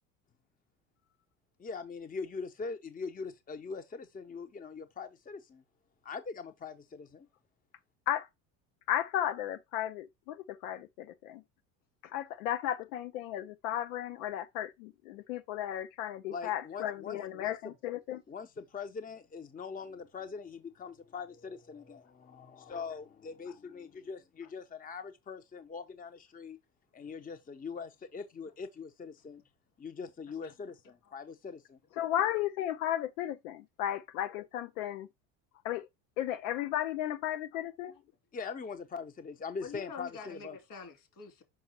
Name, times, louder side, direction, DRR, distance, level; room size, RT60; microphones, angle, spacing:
voice 1, 1.6-5.6 6.0-7.3 16.3-17.7 18.3-26.6 26.9-29.4 29.8-31.8 38.3-40.6, left 5 dB, 20° left, 0.8 m, -42 dB
voice 2, 8.9-11.4 12.0-18.2 32.0-35.1 35.6-35.9 36.2-37.9, left 12 dB, 85° left, 0.6 m, -34 dB
voice 3, 39.6-41.4, left 5 dB, 55° left, 2.9 m, -46 dB
6.1 x 5.3 x 2.9 m
supercardioid pair, 85°, 40 cm